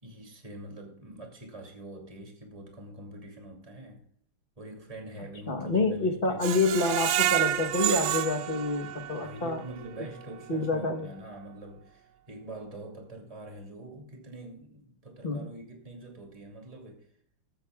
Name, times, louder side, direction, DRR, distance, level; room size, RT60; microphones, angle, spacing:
voice 1, 0.0-4.0 4.6-6.5 9.1-17.1, right 1 dB, 15° right, 1 dB, 2.5 m, -44 dB
voice 2, 5.5-9.6 10.5-11.1 15.2-15.5, left 3 dB, 35° left, 5 dB, 0.9 m, -28 dB
Screech, 6.4-9.4 9.8-9.9 10.3-10.4, right 12 dB, 75° right, 1.4 m, -28 dB
21.0 x 8.7 x 2.3 m, 0.62 s
omnidirectional pair, 2.3 m